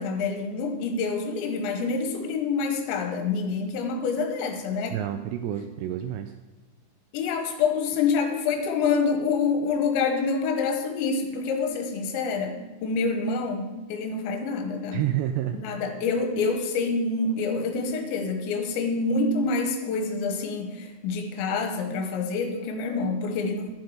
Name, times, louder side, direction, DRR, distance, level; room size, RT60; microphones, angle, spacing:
voice 1, 0.0-5.0 5.3-5.4 7.1-15.0 15.5-23.7, left 4 dB, 75° left, 5 dB, 3.4 m, -27 dB
voice 2, 4.9-6.3 14.9-15.6, right 12 dB, 85° right, 8 dB, 2.5 m, -29 dB
10.5 x 10.5 x 4.9 m, 1.2 s
omnidirectional pair, 5.4 m